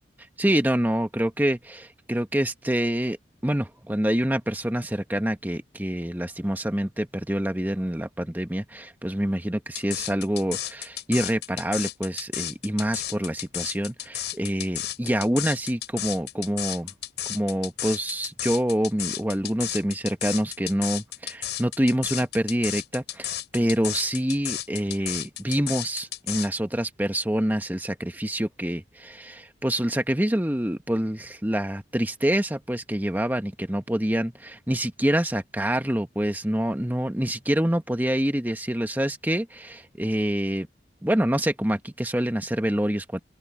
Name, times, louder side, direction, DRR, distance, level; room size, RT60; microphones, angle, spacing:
voice 1, 0.4-3.2 3.4-16.9 17.3-40.7 41.0-43.2, right 1 dB, 10° right, 1.1 m, -26 dB
sound 1, 9.7-26.5, left 12 dB, 65° left, 5.4 m, -32 dB
open air
head